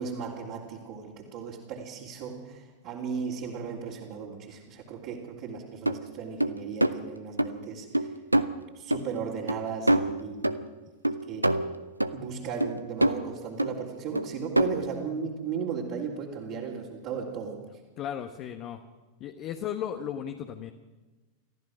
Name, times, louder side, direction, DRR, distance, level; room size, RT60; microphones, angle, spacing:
voice 1, 0.0-8.1 8.7-10.6 11.3-11.4 12.1-17.6, right 6 dB, 45° right, -3 dB, 3.3 m, -36 dB
sound 1, 5.9-6.0 6.4-6.9 7.4-7.5 7.9-8.5 8.9-9.0 9.5-9.6 9.9-10.7 11.0-12.2 12.6-13.3 13.6-13.8 14.2-14.9, right 1 dB, 85° right, 0.8 m, -25 dB
voice 2, 18.0-18.8 19.2-20.7, left 9 dB, 35° left, 6 dB, 1.3 m, -35 dB
29.0 x 14.5 x 6.3 m, 1.2 s
figure-of-eight pair, 90°, 0 cm